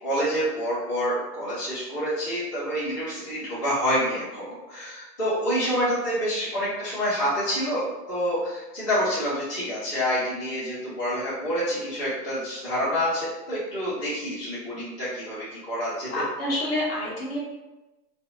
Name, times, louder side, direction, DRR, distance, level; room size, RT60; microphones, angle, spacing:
voice 1, 0.0-16.1, equal, 20° left, -16 dB, 0.5 m, -27 dB
voice 2, 16.1-17.4, left 1 dB, 40° left, -6 dB, 0.9 m, -28 dB
3.3 x 2.4 x 2.5 m, 1.0 s
hypercardioid pair, 175°, 49 cm